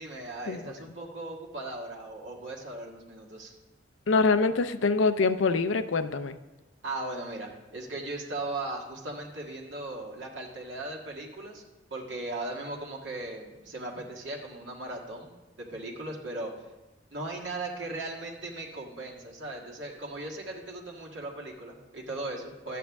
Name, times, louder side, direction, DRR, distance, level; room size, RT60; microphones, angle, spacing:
voice 1, 0.0-3.5 6.8-11.6 11.9-15.3 15.6-16.5 17.1-22.8, right 2 dB, 80° right, -2 dB, 1.7 m, -38 dB
voice 2, 4.1-6.4, left 4 dB, 90° left, 10 dB, 0.6 m, -24 dB
12.0 x 8.5 x 3.5 m, 1.1 s
head